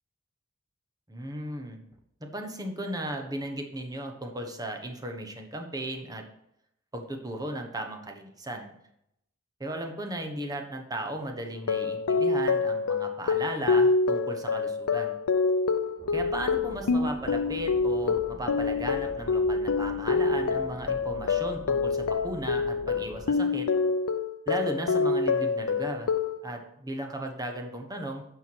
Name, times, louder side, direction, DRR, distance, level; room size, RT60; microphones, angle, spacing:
voice 1, 1.1-1.8 2.2-6.2 6.9-8.7 9.6-15.2 16.1-23.7 24.5-26.1 26.4-28.2, right 1 dB, 20° right, 4 dB, 1.1 m, -36 dB
sound 1, 11.6-26.4, left 4 dB, 85° left, 0.5 m, -26 dB
sound 2, 16.0-23.3, equal, 20° left, 1.6 m, -45 dB
9.2 x 5.8 x 4.6 m, 0.77 s
head